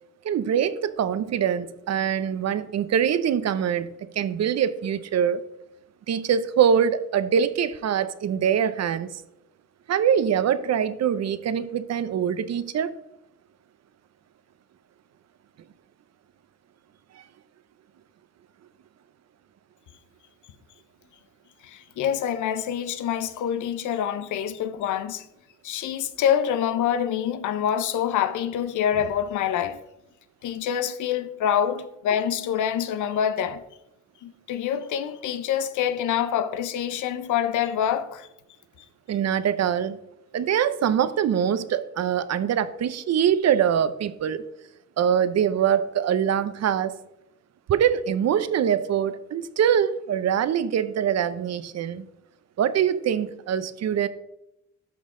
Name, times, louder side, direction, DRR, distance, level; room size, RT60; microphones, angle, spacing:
voice 1, 0.2-5.4 6.1-9.2 9.9-12.9 39.1-40.0 40.3-44.5 45.0-47.0 47.7-52.0 52.6-54.1, right 8 dB, 60° right, 0.7 m, -23 dB
voice 2, 21.6-25.3 25.6-29.8 30.4-33.6 34.2-38.3, left 9 dB, 85° left, 0.8 m, -26 dB
11.5 x 6.2 x 3.8 m
cardioid pair, 85°, 29 cm